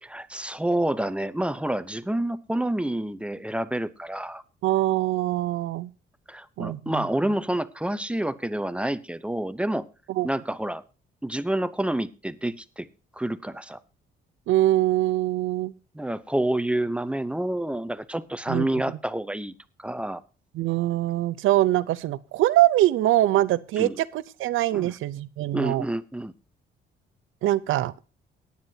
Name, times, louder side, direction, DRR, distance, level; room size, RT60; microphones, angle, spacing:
voice 1, 0.0-4.4 6.3-9.9 10.2-10.8 11.2-12.9 13.1-13.8 15.9-19.5 19.8-20.2 23.8-24.0 24.7-24.9 25.5-26.3, right 1 dB, 5° right, 14 dB, 0.7 m, -28 dB
voice 2, 4.6-5.9 6.6-7.1 10.1-10.3 14.5-15.7 18.5-18.7 20.5-25.8 27.4-27.9, right 15 dB, 85° right, 17 dB, 0.7 m, -23 dB
17.5 x 9.6 x 2.8 m, 0.33 s
cardioid pair, 90°, 20 cm